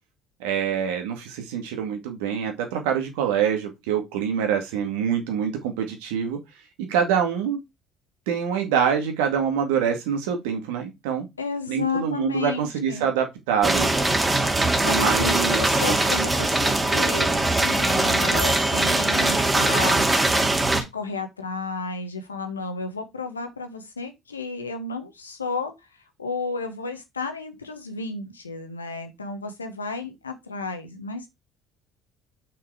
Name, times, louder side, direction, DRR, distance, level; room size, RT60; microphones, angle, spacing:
voice 1, 0.4-6.4 6.8-7.6 8.3-11.3 11.7-13.9 14.8-16.0, right 8 dB, 70° right, 2.1 m, -25 dB
voice 2, 11.4-13.1 14.6-20.1 20.3-25.7 26.2-31.3, left 4 dB, 90° left, 1.4 m, -32 dB
sound 1, 13.6-20.8, right 2 dB, 15° right, 2.3 m, -21 dB
6.1 x 5.8 x 4.8 m
figure-of-eight pair, 55°, 0 cm